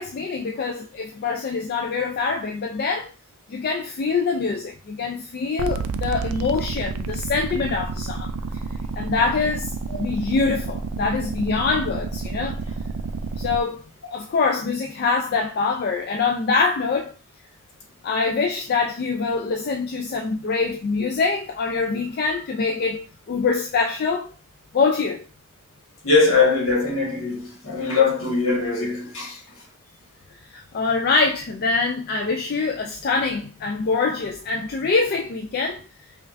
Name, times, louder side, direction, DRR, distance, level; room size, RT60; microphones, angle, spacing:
voice 1, 0.0-3.1 3.5-8.3 9.0-12.6 13.4-13.8 14.1-17.1 18.0-24.3 24.7-25.2 30.5-35.8, left 4 dB, 45° left, 0.3 m, -24 dB
sound 1, 5.6-13.6, right 4 dB, 85° right, 0.4 m, -30 dB
voice 2, 26.0-29.4, left 4 dB, 70° left, 1.5 m, -21 dB
5.2 x 2.5 x 2.5 m
head